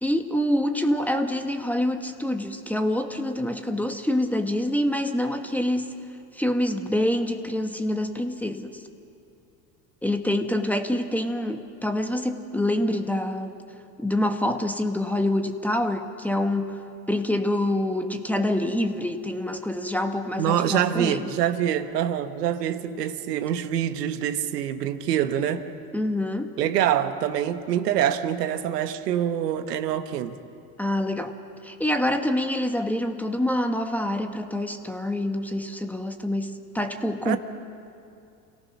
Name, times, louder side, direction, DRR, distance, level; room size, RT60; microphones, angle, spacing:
voice 1, 0.0-6.1 6.3-8.8 10.0-13.5 14.0-21.3 25.9-26.6 30.8-31.4 31.6-37.4, left 1 dB, 5° left, 5 dB, 1.5 m, -26 dB
voice 2, 20.4-25.6 26.6-30.4 37.2-37.4, right 10 dB, 85° right, 10 dB, 1.4 m, -25 dB
28.5 x 17.5 x 6.1 m, 2.6 s
hypercardioid pair, 90°, 47 cm